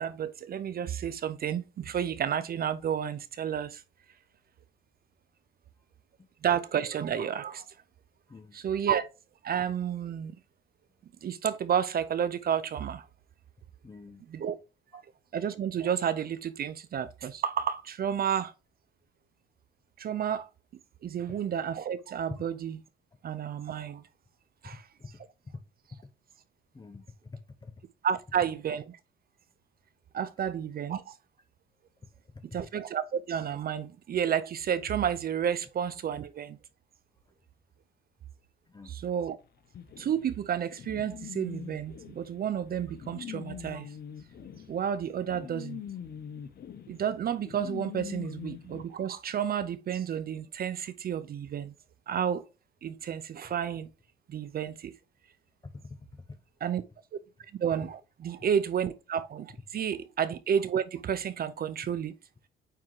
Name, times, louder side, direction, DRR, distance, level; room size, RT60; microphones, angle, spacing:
voice 1, 0.0-3.8 6.4-7.7 8.5-9.1 9.4-10.3 11.2-13.1 14.3-14.6 14.9-15.0 15.3-18.5 20.0-20.5 21.0-22.8 23.2-24.0 24.6-24.9 28.0-29.0 30.1-31.2 32.5-36.6 38.9-39.4 40.0-43.9 44.7-45.8 46.9-51.7 52.1-52.4 52.8-53.9 54.3-54.9 56.6-56.8 57.1-57.2 57.6-62.1, right 8 dB, 50° right, 0.5 m, -31 dB
voice 2, 13.8-14.2 21.3-21.4 22.3-22.4 24.6-25.2 25.9-26.1 26.7-27.7 32.3-32.6 38.7-38.9 55.6-55.9 56.3-56.4, left 3 dB, 20° left, 0.8 m, -46 dB
sound 1, 39.7-48.8, left 9 dB, 55° left, 0.7 m, -43 dB
9.0 x 3.6 x 3.1 m
cardioid pair, 90°, 20 cm